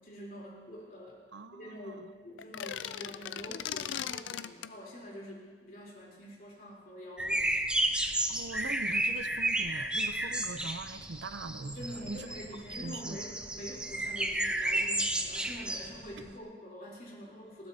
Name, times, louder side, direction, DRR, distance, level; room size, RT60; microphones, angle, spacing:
voice 1, 0.0-1.2 1.5-7.7 11.8-17.7, equal, 50° left, -3 dB, 3.6 m, -46 dB
voice 2, 1.3-2.1 8.3-12.3 12.7-13.2, right 3 dB, 80° right, 11 dB, 0.6 m, -42 dB
sound 1, 2.4-4.7, left 10 dB, 85° left, 0.4 m, -38 dB
sound 2, 7.2-16.3, right 1 dB, 5° right, 0.6 m, -32 dB
20.0 x 16.0 x 2.8 m, 1.5 s
head